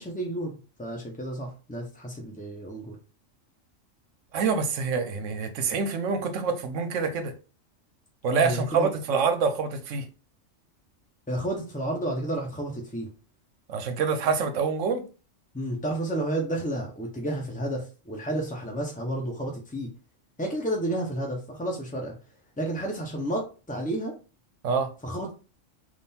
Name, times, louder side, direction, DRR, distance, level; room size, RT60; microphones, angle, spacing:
voice 1, 0.0-3.0 8.4-8.9 11.3-13.1 15.5-19.9 20.4-22.1 22.6-24.2 25.0-25.3, right 1 dB, 10° left, 0.4 m, -31 dB
voice 2, 4.3-7.3 8.2-10.1 13.7-15.0 24.6-24.9, right 5 dB, 75° right, 1.0 m, -26 dB
3.7 x 2.5 x 4.1 m
omnidirectional pair, 1.3 m